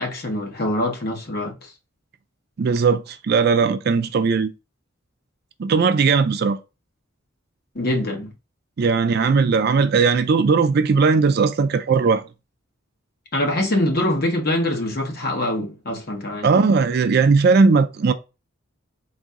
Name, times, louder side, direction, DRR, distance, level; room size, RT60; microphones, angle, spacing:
voice 1, 0.0-1.7 7.7-8.3 13.3-16.5, left 1 dB, 50° left, 1.0 m, -24 dB
voice 2, 2.6-4.5 5.6-6.6 8.8-12.2 16.4-18.1, right 5 dB, 50° right, 0.4 m, -18 dB
4.1 x 2.6 x 3.5 m
head